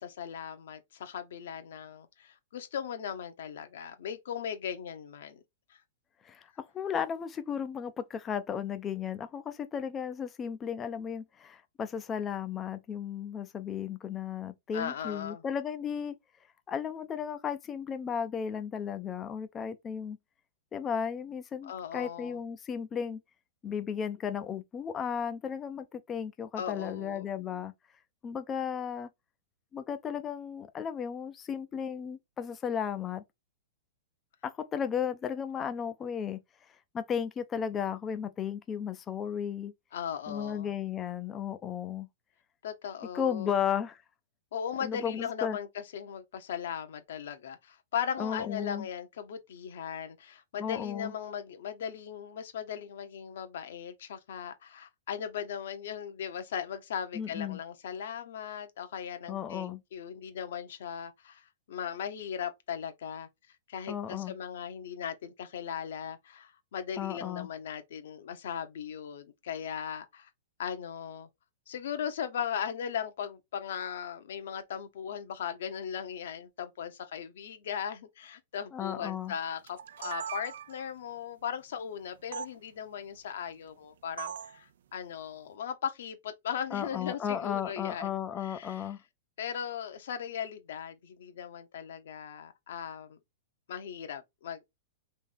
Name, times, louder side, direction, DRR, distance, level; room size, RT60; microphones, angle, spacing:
voice 1, 0.0-5.4 14.7-15.4 21.6-22.4 26.6-27.3 39.9-40.7 42.6-43.5 44.5-63.3 63.7-70.3 70.6-71.3 71.7-88.1 88.4-88.9 89.4-93.2 93.7-94.8, left 8 dB, 65° left, 1.1 m, -38 dB
voice 2, 6.7-16.1 16.7-20.2 20.7-23.2 23.6-27.7 28.2-29.1 29.7-33.2 34.4-36.4 36.9-39.7 40.3-42.1 43.1-44.0 44.8-45.6 48.2-48.9 50.6-51.1 57.1-57.6 59.3-59.8 63.9-64.3 67.0-67.5 78.7-79.3 86.7-89.0, left 8 dB, 15° left, 0.5 m, -34 dB
sound 1, 79.7-80.9 82.3-82.5 84.2-84.6, right 8 dB, 70° right, 0.4 m, -39 dB
3.5 x 3.2 x 4.3 m
hypercardioid pair, 160°, 0 cm